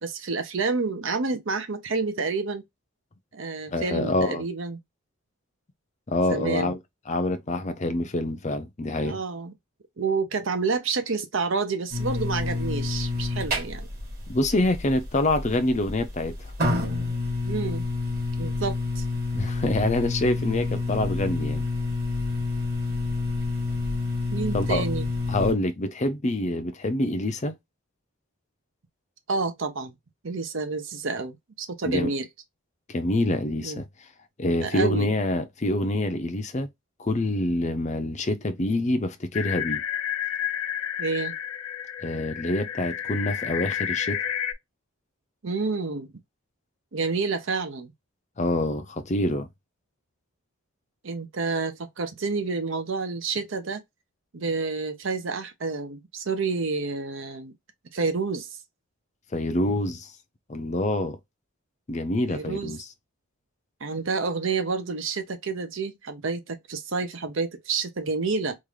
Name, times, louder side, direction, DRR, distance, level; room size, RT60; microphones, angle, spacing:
voice 1, 0.0-2.6 3.3-4.8 6.3-6.7 9.0-9.5 10.0-13.9 17.4-17.8 18.4-19.0 24.3-25.1 29.3-29.9 30.2-32.3 33.6-33.8 34.6-35.1 41.0-41.4 45.4-46.1 46.9-47.9 51.0-53.8 54.3-57.5 57.9-58.5 62.3-62.7 63.8-68.6, right 4 dB, 60° right, 0.7 m, -29 dB
voice 2, 3.7-4.5 6.1-6.8 7.1-9.2 14.3-16.5 19.3-21.7 24.5-24.8 25.3-27.6 31.8-32.1 32.9-33.9 34.4-36.7 37.0-39.8 42.0-44.2 48.4-49.5 59.3-60.1 60.5-61.2 61.9-62.9, left 1 dB, 30° left, 0.5 m, -26 dB
Fluorescent light turn on and hum, 11.9-25.5, left 2 dB, 40° right, 2.0 m, -28 dB
sound 1, 39.3-44.5, left 10 dB, 80° left, 0.5 m, -30 dB
3.7 x 2.4 x 3.1 m
head